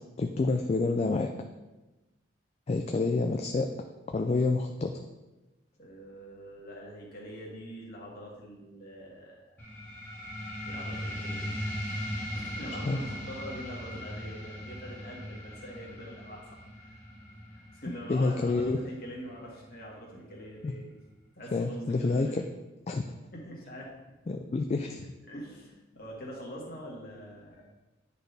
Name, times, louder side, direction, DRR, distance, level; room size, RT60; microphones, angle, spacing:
voice 1, 0.2-1.3 2.7-3.7 4.1-4.9 12.8-13.0 18.1-18.8 20.6-20.7 21.5-22.4 22.9-23.2 24.3-25.1, left 3 dB, 35° left, 5 dB, 0.3 m, -28 dB
voice 2, 5.8-9.6 10.2-10.3 10.6-11.6 11.8-16.4 16.7-17.0 17.7-21.0 21.3-22.4 23.3-23.9 25.3-27.7, equal, 50° left, -3 dB, 1.6 m, -44 dB
sound 1, 9.6-20.6, equal, 10° left, 1.5 m, -39 dB
10.0 x 4.2 x 3.4 m, 1.1 s
head